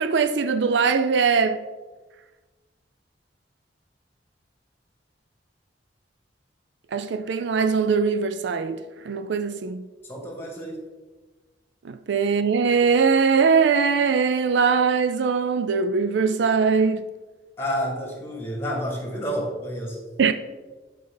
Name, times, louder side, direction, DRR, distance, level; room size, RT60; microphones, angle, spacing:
voice 1, 0.0-1.6 6.9-9.8 11.8-17.0 20.2-20.3, right 5 dB, 70° right, 0.4 m, -21 dB
voice 2, 10.0-10.8 17.6-20.0, equal, 15° left, 2.1 m, -30 dB
9.5 x 5.5 x 3.9 m
head